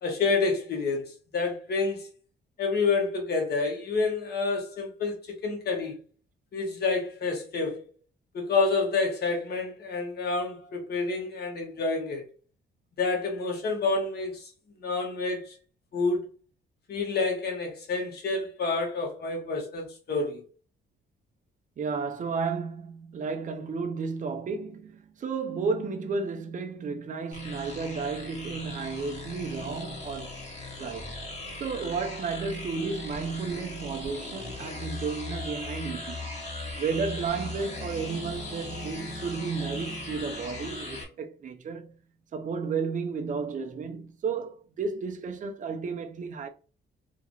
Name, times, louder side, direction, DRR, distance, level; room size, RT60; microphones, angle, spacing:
voice 1, 0.0-2.1 2.6-6.0 6.5-7.9 8.3-12.2 13.0-14.5 14.8-15.5 15.9-16.2 16.9-20.4, left 3 dB, 55° left, 1.3 m, -28 dB
voice 2, 21.8-30.4 30.8-31.1 31.6-36.3 36.8-41.9 42.3-46.5, right 5 dB, 40° right, 0.5 m, -32 dB
sound 1, 27.3-41.1, left 2 dB, 35° left, 1.4 m, -39 dB
2.9 x 2.4 x 2.8 m
cardioid pair, 90°, 20 cm